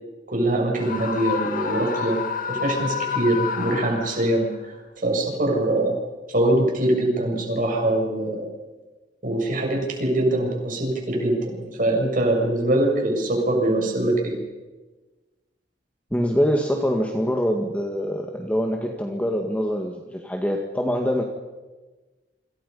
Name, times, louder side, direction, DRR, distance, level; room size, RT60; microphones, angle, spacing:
voice 1, 0.3-2.2 2.5-4.5 5.0-6.0 6.3-8.5 9.2-14.4, right 1 dB, 50° right, 0 dB, 7.4 m, -23 dB
Screaming, 0.8-4.5, left 6 dB, 50° left, 2.1 m, -29 dB
voice 2, 16.1-21.2, equal, 10° left, 2 dB, 1.9 m, -24 dB
29.0 x 26.0 x 5.6 m, 1.2 s
head